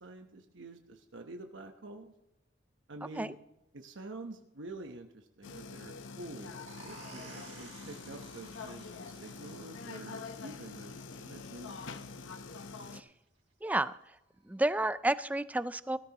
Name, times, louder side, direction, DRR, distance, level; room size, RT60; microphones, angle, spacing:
voice 1, 0.0-2.1 2.9-3.4 3.7-11.8, right 2 dB, 80° right, 4 dB, 1.0 m, -47 dB
sound 1, 5.4-13.0, left 4 dB, 90° left, 0.8 m, -45 dB
sound 2, 6.7-12.1, right 4 dB, 35° right, 4.1 m, -55 dB
voice 2, 13.6-14.2 14.4-16.0, right 1 dB, 10° right, 15 dB, 0.4 m, -31 dB
18.0 x 13.0 x 3.0 m, 0.88 s
head